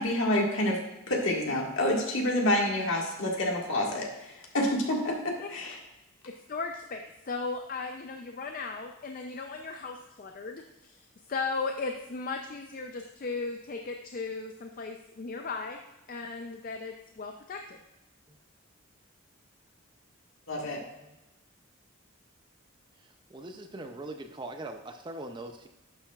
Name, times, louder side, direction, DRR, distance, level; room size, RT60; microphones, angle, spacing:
voice 1, 0.0-5.8 20.5-20.8, left 1 dB, 65° left, -1 dB, 1.7 m, -28 dB
voice 2, 6.3-15.8 16.1-17.8, left 4 dB, 40° left, 4 dB, 0.4 m, -37 dB
voice 3, 23.0-25.7, right 2 dB, 20° right, 6 dB, 0.4 m, -41 dB
11.0 x 6.8 x 2.4 m, 1.0 s
head